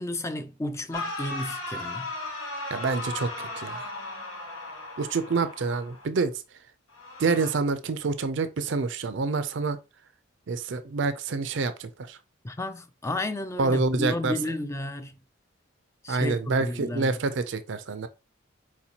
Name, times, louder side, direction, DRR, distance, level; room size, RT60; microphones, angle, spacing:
voice 1, 0.0-2.1 12.4-15.2 16.0-17.1, left 1 dB, 15° left, 0.3 m, -32 dB
sound 1, 0.9-6.1 6.9-7.5, left 2 dB, 85° left, 1.5 m, -36 dB
voice 2, 2.7-3.9 5.0-6.3 7.2-9.8 10.5-12.2 13.6-14.3 16.1-18.1, right 4 dB, 60° right, 0.4 m, -27 dB
4.4 x 4.3 x 2.8 m
head